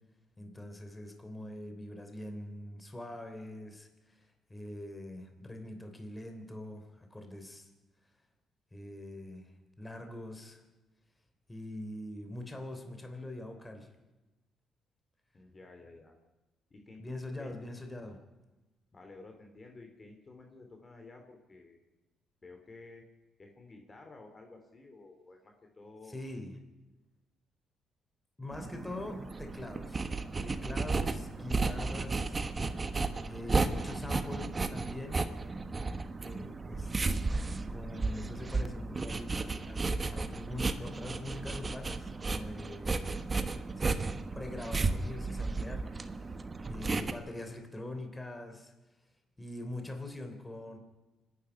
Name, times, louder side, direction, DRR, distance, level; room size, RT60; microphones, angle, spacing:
voice 1, 0.4-4.2 4.5-7.7 8.7-9.5 9.8-10.6 11.5-13.9 17.0-18.2 26.1-26.6 28.4-30.0 30.4-32.4 33.2-35.3 36.2-37.0 37.7-43.3 43.8-46.4 46.7-48.7 49.4-50.8, left 1 dB, 15° left, 6 dB, 3.3 m, -43 dB
voice 2, 15.3-16.2 16.7-17.5 18.9-21.8 22.4-23.0 23.4-26.2, left 3 dB, 30° left, 3 dB, 2.8 m, -52 dB
sound 1, 28.5-47.1, right 3 dB, 30° right, 1.3 m, -34 dB
24.5 x 11.0 x 9.8 m, 1.1 s
cardioid pair, 90°, 0 cm